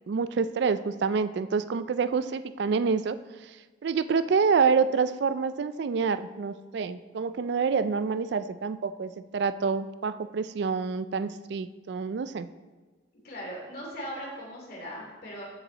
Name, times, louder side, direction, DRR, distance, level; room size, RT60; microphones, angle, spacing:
voice 1, 0.1-3.6 3.8-12.5, right 5 dB, 60° right, 13 dB, 0.3 m, -27 dB
voice 2, 13.2-15.4, equal, 50° left, -3 dB, 2.6 m, -39 dB
13.5 x 4.8 x 3.9 m, 1.3 s
head